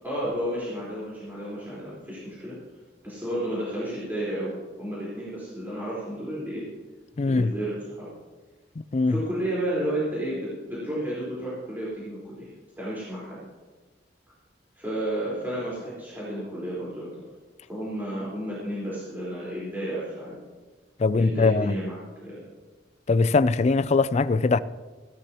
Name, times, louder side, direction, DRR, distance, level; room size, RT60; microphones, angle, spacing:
voice 1, 0.0-2.6 3.0-6.6 7.2-8.1 9.1-13.4 14.7-17.2 17.7-20.4 21.2-21.9 22.2-22.4, right 1 dB, 10° right, 4.3 m, -32 dB
voice 2, 7.2-7.5 8.9-9.2 21.0-21.7 23.1-24.6, left 3 dB, 40° left, 0.4 m, -21 dB
17.0 x 13.0 x 3.0 m
head